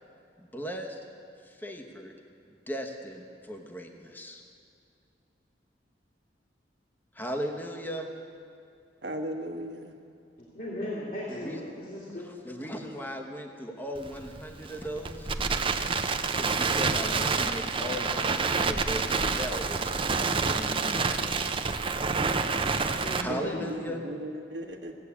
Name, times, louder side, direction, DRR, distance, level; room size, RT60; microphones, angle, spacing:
voice 1, 0.4-1.0 1.4-2.1 2.7-4.4 7.1-8.1 11.3-11.6 12.4-15.3 16.4-20.2 20.4-21.3 23.2-24.0, equal, 10° left, 3 dB, 1.1 m, -37 dB
voice 2, 9.0-9.9 23.3-24.9, right 1 dB, 70° right, 3 dB, 1.5 m, -37 dB
voice 3, 10.5-12.3 23.0-23.6, left 1 dB, 55° left, -7 dB, 2.8 m, -37 dB
Crackle, 14.0-23.2, right 4 dB, 30° right, 0.6 m, -28 dB
16.5 x 8.3 x 8.5 m, 2.5 s
head